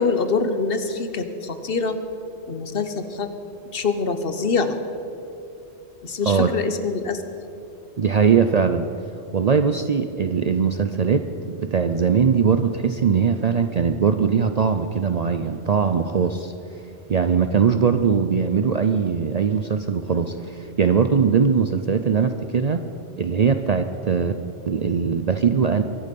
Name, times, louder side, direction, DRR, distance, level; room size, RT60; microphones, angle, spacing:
voice 1, 0.0-2.0 2.5-3.3 3.7-4.8 6.0-7.2 21.1-21.2, left 4 dB, 55° left, 9 dB, 1.1 m, -24 dB
voice 2, 8.0-8.9 9.3-16.5 17.1-22.8 23.2-24.3 24.7-25.8, right 6 dB, 50° right, 8 dB, 0.5 m, -20 dB
23.0 x 10.5 x 5.3 m, 2.7 s
omnidirectional pair, 1.2 m